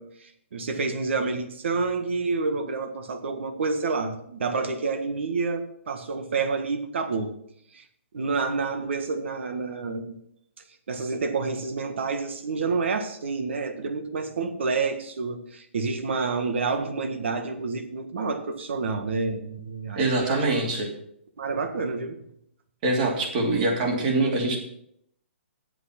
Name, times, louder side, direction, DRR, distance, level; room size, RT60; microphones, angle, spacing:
voice 1, 0.0-7.3 7.7-7.8 8.1-10.2 10.9-20.5 21.4-22.2, right 4 dB, 70° right, 8 dB, 1.5 m, -29 dB
voice 2, 20.0-20.9 22.8-24.6, right 2 dB, 40° right, 1 dB, 2.7 m, -24 dB
8.7 x 7.9 x 5.9 m, 0.72 s
hypercardioid pair, 155°, 7 cm